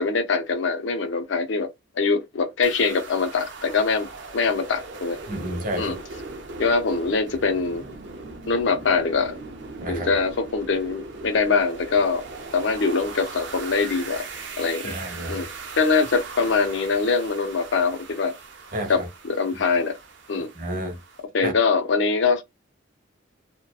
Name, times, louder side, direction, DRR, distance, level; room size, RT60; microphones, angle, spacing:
voice 1, 0.0-1.7 2.0-4.1 4.3-5.2 5.7-6.0 6.6-7.8 8.5-9.4 9.9-12.2 12.5-14.3 14.6-15.0 15.3-15.5 15.8-18.4 18.9-20.0 20.3-20.5 21.3-22.4, left 4 dB, 90° left, 0.5 m, -23 dB
sound 1, 2.6-21.2, right 3 dB, 85° right, 0.7 m, -39 dB
voice 2, 5.3-6.0 9.8-10.1 14.8-15.4 18.7-19.1 20.5-21.0 21.4-21.5, right 1 dB, 45° right, 1.0 m, -30 dB
2.6 x 2.1 x 2.3 m
head